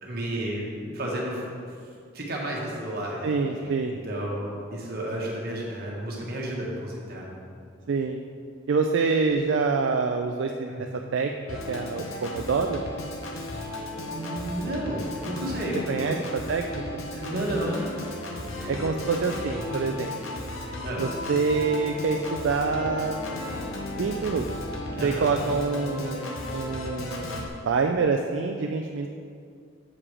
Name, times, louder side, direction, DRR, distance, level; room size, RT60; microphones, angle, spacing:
voice 1, 0.0-1.5 2.1-3.4 3.6-7.2 10.7-10.8 13.5-13.6 14.0-16.1 17.1-17.9 18.5-18.7 19.7-19.9 20.8-21.1 24.9-25.3, right 1 dB, 50° right, -3 dB, 1.3 m, -32 dB
voice 2, 3.2-4.0 7.9-8.2 8.7-10.7 11.1-11.3 11.7-12.8 15.9-17.0 18.7-20.1 21.0-23.2 23.9-24.5 25.0-29.1, right 4 dB, 70° right, 4 dB, 0.4 m, -26 dB
Organ, 11.5-27.5, left 1 dB, 85° left, 1.0 m, -35 dB
7.3 x 4.8 x 4.9 m, 2.3 s
head